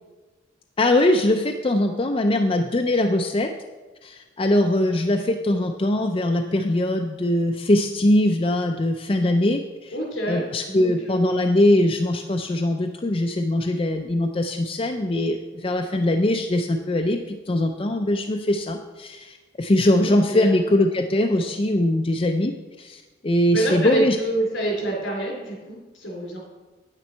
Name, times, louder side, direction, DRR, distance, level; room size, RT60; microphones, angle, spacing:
voice 1, 0.8-3.5 4.0-9.9 10.3-24.2, left 1 dB, 30° left, 4 dB, 0.4 m, -22 dB
voice 2, 9.9-11.5 20.0-20.5 23.5-26.4, right 1 dB, 75° left, -2 dB, 3.7 m, -27 dB
9.2 x 9.0 x 4.4 m, 1.3 s
head